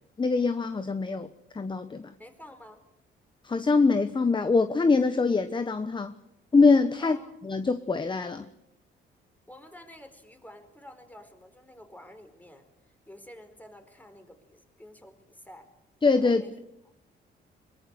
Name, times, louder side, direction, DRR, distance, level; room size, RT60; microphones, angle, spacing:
voice 1, 0.2-1.3 1.5-2.1 3.4-6.1 6.5-7.2 7.4-8.5 16.0-16.4, left 4 dB, 25° left, 11 dB, 1.1 m, -23 dB
voice 2, 2.2-2.8 7.0-7.3 9.5-12.7 13.1-15.7 16.2-16.5, left 1 dB, 10° left, 7 dB, 4.5 m, -49 dB
22.5 x 21.0 x 8.0 m, 0.84 s
cardioid pair, 90°, 20 cm